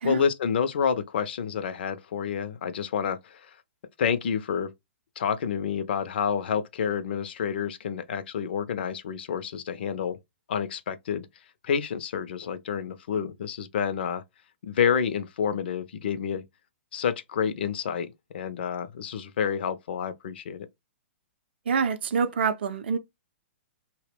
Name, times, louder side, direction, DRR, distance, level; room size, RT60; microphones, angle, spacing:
voice 1, 0.0-3.6 4.0-4.7 5.2-10.2 10.5-11.3 11.6-14.2 14.6-16.4 16.9-20.7, left 7 dB, 55° left, 0.4 m, -29 dB
voice 2, 21.7-23.0, right 6 dB, 60° right, 0.4 m, -26 dB
2.1 x 2.0 x 3.2 m
figure-of-eight pair, 115°, 7 cm